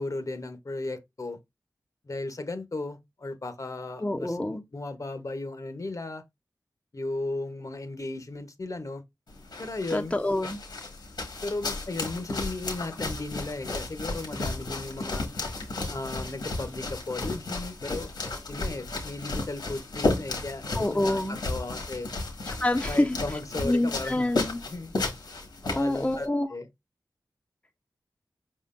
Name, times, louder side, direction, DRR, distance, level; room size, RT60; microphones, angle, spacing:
voice 1, 0.0-1.4 2.0-6.2 6.9-9.0 9.6-10.1 11.4-15.3 15.9-18.1 18.5-22.1 22.9-24.2 24.7-24.9 25.6-26.7, left 2 dB, 50° left, 0.9 m, -35 dB
voice 2, 4.0-4.6 9.9-10.6 20.8-21.4 22.6-23.2 23.6-24.6 25.7-26.5, left 1 dB, 15° left, 0.7 m, -26 dB
sound 1, 9.3-26.3, left 2 dB, 80° left, 1.6 m, -33 dB
5.0 x 3.7 x 2.5 m
cardioid pair, 40°, 7 cm